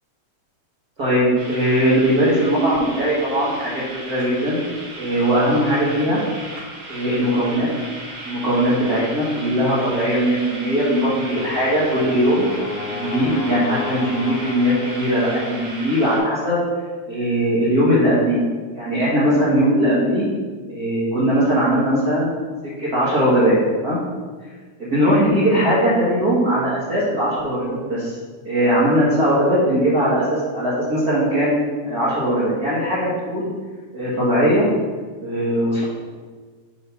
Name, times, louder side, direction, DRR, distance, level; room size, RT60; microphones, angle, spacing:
voice 1, 1.0-4.6 5.0-6.2 6.9-7.7 8.2-12.4 12.9-16.6 17.1-18.4 18.7-20.2 20.7-22.3 22.8-24.0 24.8-28.2 28.4-30.3 30.5-31.6 31.8-33.5 33.9-34.7 35.2-35.8, equal, 50° right, -9 dB, 1.1 m, -19 dB
sound 1, 1.4-16.2, right 2 dB, 65° right, 0.8 m, -36 dB
Brass instrument, 11.0-15.2, left 5 dB, 80° left, 1.9 m, -33 dB
5.6 x 3.2 x 5.5 m, 1.4 s
omnidirectional pair, 3.6 m